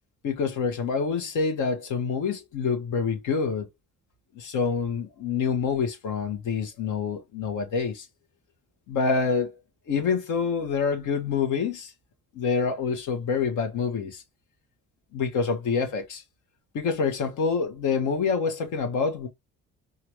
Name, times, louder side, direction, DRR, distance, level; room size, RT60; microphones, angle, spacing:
voice 1, 0.2-3.7 4.3-8.1 8.9-9.5 9.9-11.9 12.3-14.2 15.1-16.2 16.7-19.3, left 5 dB, 80° left, 1.3 m, -26 dB
4.9 x 2.7 x 3.0 m
cardioid pair, 90°, 30 cm